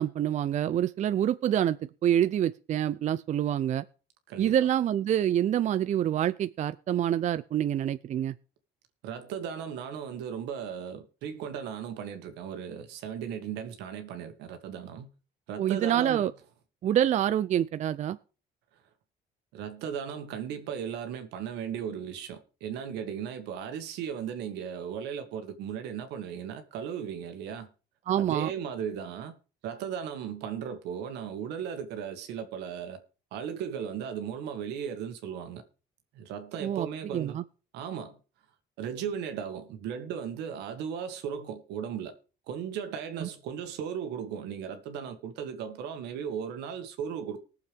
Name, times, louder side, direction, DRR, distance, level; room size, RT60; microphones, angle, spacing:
voice 1, 0.0-3.8 4.4-8.3 15.6-16.3 16.8-18.2 28.1-28.5 36.6-36.9 37.1-37.4 43.2-43.3, right 10 dB, 45° right, 0.4 m, -26 dB
voice 2, 9.0-15.1 15.5-16.3 19.5-27.7 28.1-29.3 29.6-33.0 33.3-35.6 36.1-37.4 37.7-38.2 38.8-42.1 42.5-47.4, right 8 dB, 90° right, 1.8 m, -36 dB
20.0 x 7.0 x 3.5 m
cardioid pair, 110°, 17 cm